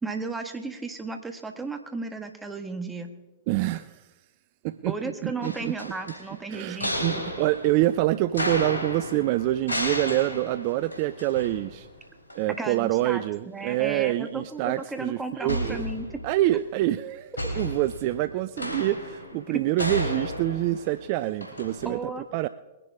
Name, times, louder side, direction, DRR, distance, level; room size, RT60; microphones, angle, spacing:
voice 1, 0.0-3.1 4.9-7.3 12.6-16.2 19.5-19.6 21.8-22.2, right 3 dB, 10° right, 6 dB, 1.5 m, -34 dB
voice 2, 3.5-4.0 4.6-4.9 5.2-5.9 6.5-11.9 12.3-15.8 16.2-22.5, right 15 dB, 45° right, 14 dB, 0.4 m, -26 dB
sound 1, 5.4-12.0 12.3-12.4 15.5-16.5 17.4-21.9, equal, 85° left, 3.8 m, -33 dB
21.5 x 11.0 x 3.6 m, 1.1 s
figure-of-eight pair, 110°, 0 cm